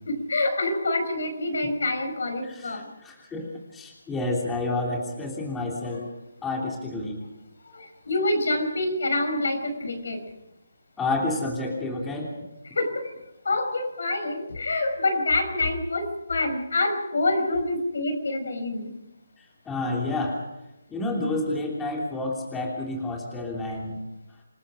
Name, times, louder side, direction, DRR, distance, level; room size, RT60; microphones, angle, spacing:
voice 1, 0.1-2.9 7.7-10.2 12.7-13.1 13.4-18.9, left 2 dB, 70° left, 6 dB, 5.5 m, -26 dB
voice 2, 2.4-6.1 6.4-7.2 11.0-12.3 19.4-20.4 20.9-24.0, left 2 dB, 10° left, -1 dB, 3.2 m, -29 dB
27.0 x 19.5 x 5.1 m, 0.90 s
hypercardioid pair, 160°, 0 cm